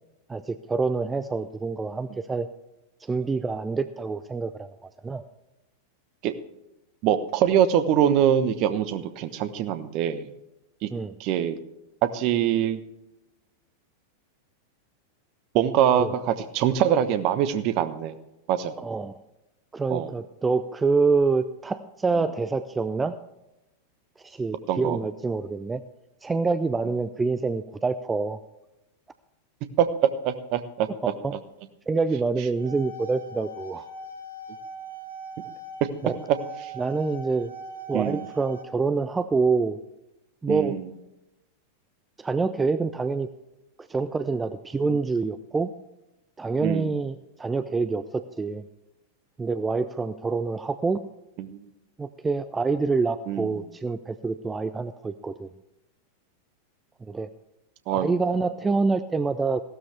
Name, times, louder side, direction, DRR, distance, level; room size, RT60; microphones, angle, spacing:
voice 1, 0.3-2.5 3.0-5.2 10.9-11.1 16.0-16.1 18.8-19.2 19.7-23.1 24.2-25.8 26.2-28.4 31.2-31.4 31.9-33.9 36.0-36.2 36.8-37.5 37.9-39.8 40.4-40.8 42.2-43.3 43.9-45.7 46.4-48.6 49.4-51.0 52.0-55.5 57.1-57.3 57.9-59.6, right 4 dB, 15° right, 12 dB, 0.5 m, -26 dB
voice 2, 7.0-10.3 10.8-10.9 11.2-11.6 12.0-12.8 15.5-18.1 18.5-18.7 19.9-20.1 24.7-25.0 29.8-31.1 36.3-36.4 36.6-36.7 37.9-38.2 40.5-40.8 46.6-46.9 51.4-51.6 53.3-53.5 57.9-58.1, right 10 dB, 40° right, 12 dB, 1.1 m, -24 dB
sound 1, 32.4-38.6, right 3 dB, 90° right, 2.0 m, -40 dB
16.0 x 12.5 x 3.4 m, 0.95 s
figure-of-eight pair, 90°, 0 cm